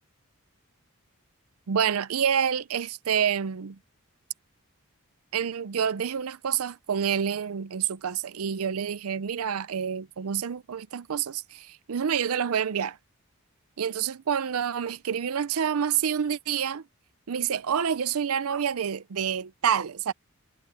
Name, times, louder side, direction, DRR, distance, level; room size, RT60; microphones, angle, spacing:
voice 1, 1.7-3.8 5.3-13.0 13.8-16.8 17.3-20.1, right 8 dB, 85° right, 0.5 m, -28 dB
head